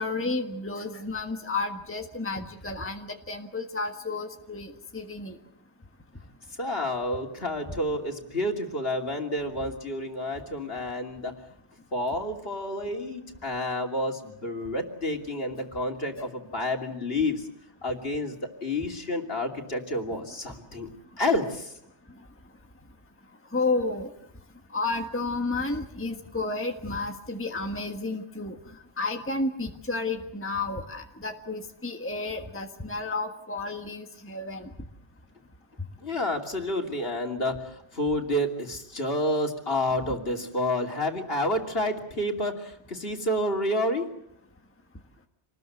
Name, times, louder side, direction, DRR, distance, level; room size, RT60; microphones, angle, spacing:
voice 1, 0.0-5.3 23.5-24.1 24.7-28.6 29.0-34.7, left 3 dB, 10° left, 4 dB, 1.5 m, -31 dB
voice 2, 6.6-11.3 11.9-17.5 17.8-20.9 21.2-21.7 36.0-44.1, left 1 dB, 55° left, 3 dB, 3.0 m, -29 dB
27.0 x 20.0 x 8.0 m, 0.78 s
omnidirectional pair, 1.2 m